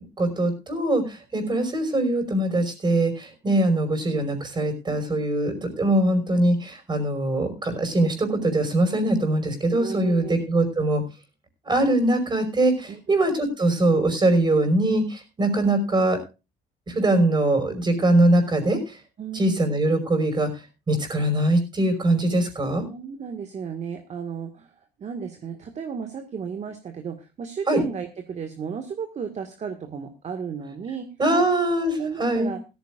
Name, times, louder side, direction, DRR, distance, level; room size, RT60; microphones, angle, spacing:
voice 1, 0.2-11.0 11.6-16.2 16.9-19.0 19.3-20.5 20.9-22.8 27.7-27.8 31.2-32.5, right 1 dB, 25° right, 7 dB, 5.4 m, -22 dB
voice 2, 9.8-10.3 12.9-13.0 19.2-19.7 22.8-24.7 25.0-31.4 32.0-32.6, right 6 dB, 40° right, 6 dB, 1.8 m, -34 dB
16.5 x 14.5 x 2.5 m, 0.29 s
cardioid pair, 110°, 17 cm